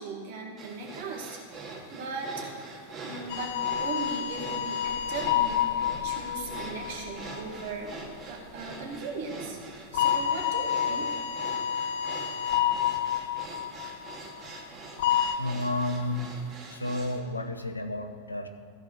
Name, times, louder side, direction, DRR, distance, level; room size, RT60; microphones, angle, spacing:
voice 1, 0.0-1.4 1.9-2.6 3.0-3.5 3.8-7.9 8.3-9.6 9.9-11.1, right 3 dB, 50° right, 0 dB, 2.2 m, -38 dB
sound 1, 0.6-17.2, right 3 dB, 25° right, 2.2 m, -43 dB
sound 2, 3.3-7.8 9.9-14.2 15.0-15.4, left 10 dB, 50° left, 0.4 m, -29 dB
voice 2, 15.3-16.3 16.7-18.5, left 2 dB, 80° left, 8 dB, 0.8 m, -31 dB
14.5 x 4.8 x 7.9 m, 2.4 s
figure-of-eight pair, 90°, 0 cm